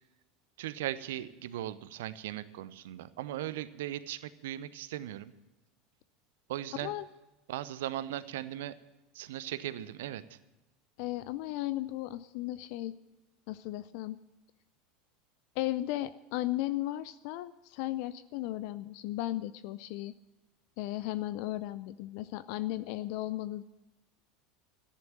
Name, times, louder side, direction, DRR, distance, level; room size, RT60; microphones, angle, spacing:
voice 1, 0.6-5.3 6.5-6.9 7.5-8.8 9.1-10.4, right 13 dB, 65° right, 16 dB, 0.8 m, -38 dB
voice 2, 11.0-13.0 13.5-14.2 15.6-20.1 20.8-23.6, left 15 dB, 55° left, 14 dB, 0.5 m, -35 dB
14.0 x 10.5 x 7.3 m, 1.1 s
figure-of-eight pair, 75°, 0 cm